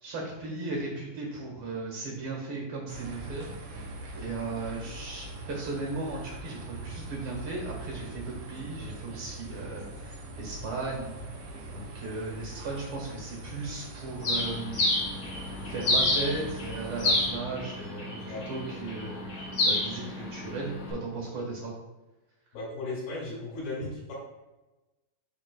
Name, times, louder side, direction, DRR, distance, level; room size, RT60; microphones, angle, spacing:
voice 1, 0.0-3.7 4.1-11.1 11.7-14.8 15.7-21.7, right 3 dB, 50° right, -1 dB, 2.0 m, -36 dB
sound 1, 2.9-17.3, right 2 dB, 85° right, 1.3 m, -42 dB
Bird, 14.2-20.9, left 2 dB, 55° left, 2.9 m, -30 dB
voice 2, 18.1-18.4 22.5-24.1, left 2 dB, 80° left, -5 dB, 4.2 m, -36 dB
11.0 x 4.3 x 2.3 m, 1.0 s
omnidirectional pair, 3.9 m